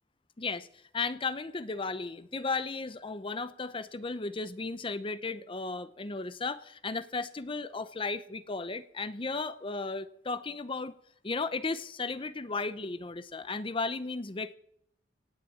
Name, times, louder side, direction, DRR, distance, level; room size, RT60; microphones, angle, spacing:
voice 1, 0.4-0.7 0.9-11.0 11.2-14.5, left 3 dB, 30° left, 14 dB, 0.7 m, -35 dB
17.5 x 7.6 x 8.5 m, 0.68 s
head